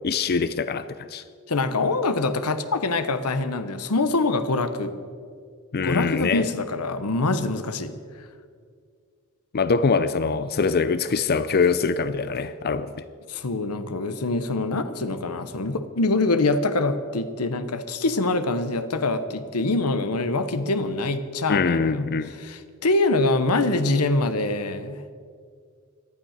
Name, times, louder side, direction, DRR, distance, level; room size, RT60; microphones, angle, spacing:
voice 1, 0.0-1.2 5.7-6.4 9.5-12.9 21.5-22.3, left 5 dB, 45° left, 14 dB, 0.5 m, -23 dB
voice 2, 1.5-4.9 5.8-7.9 13.3-22.0 22.4-25.0, left 2 dB, 90° left, 11 dB, 1.0 m, -24 dB
18.0 x 12.0 x 6.6 m, 2.1 s
head